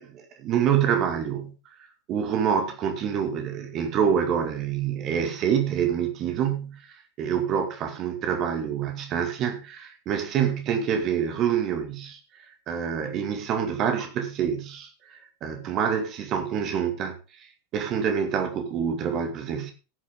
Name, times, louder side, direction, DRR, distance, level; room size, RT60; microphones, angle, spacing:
voice 1, 0.0-1.5 2.1-6.8 7.2-12.2 12.7-17.1 17.7-19.7, right 8 dB, 35° right, 2.2 m, -26 dB
16.0 x 6.9 x 3.8 m
figure-of-eight pair, 90°, 0 cm